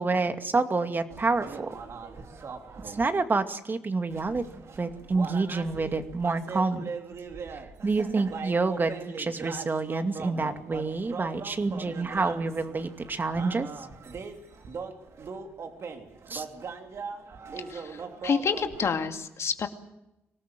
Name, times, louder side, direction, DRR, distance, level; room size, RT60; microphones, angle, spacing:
voice 1, 0.0-1.7 2.8-4.4 4.8-6.9 7.8-13.7 16.3-16.5, right 3 dB, 40° right, 7 dB, 2.3 m, -28 dB
sound 1, 1.1-3.0 4.1-18.9, right 5 dB, 60° right, 3.3 m, -40 dB
voice 2, 17.7-19.7, left 6 dB, 60° left, 6 dB, 2.4 m, -29 dB
25.0 x 18.5 x 7.7 m, 0.90 s
hypercardioid pair, 45°, 5 cm